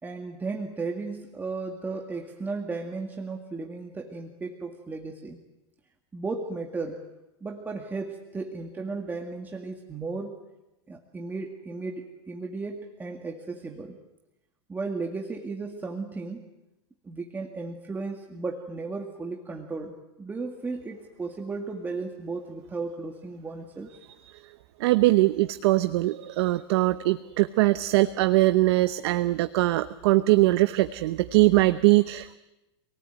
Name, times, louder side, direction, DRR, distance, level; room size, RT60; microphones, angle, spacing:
voice 1, 0.0-5.4 6.1-7.0 7.4-10.4 10.9-14.0 14.7-16.5 17.0-23.9, right 3 dB, 10° right, 3 dB, 2.0 m, -35 dB
voice 2, 24.8-32.3, right 18 dB, 65° right, 12 dB, 0.9 m, -22 dB
27.5 x 18.5 x 9.2 m, 0.97 s
supercardioid pair, 135°, 15 cm